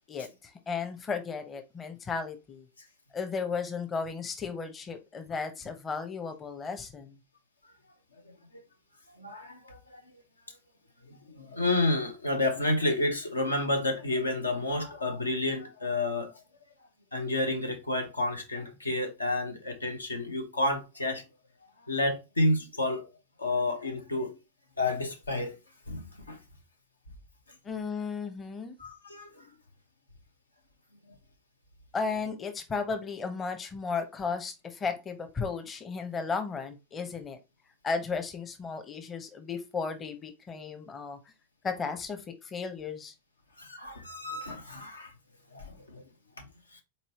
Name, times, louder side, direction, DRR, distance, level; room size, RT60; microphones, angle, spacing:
voice 1, 0.1-2.7 3.1-7.2 27.6-28.8 31.9-37.4 37.8-41.2 41.6-43.1, left 5 dB, 20° left, 0.8 m, -34 dB
voice 2, 9.2-10.0 11.1-16.3 17.1-21.2 21.9-23.1 23.4-24.3 24.8-25.6 25.9-26.4 28.8-29.5 34.0-34.1 43.6-45.1 45.5-46.0, left 2 dB, 80° left, 0.9 m, -30 dB
4.2 x 4.1 x 3.0 m
figure-of-eight pair, 90°, 0 cm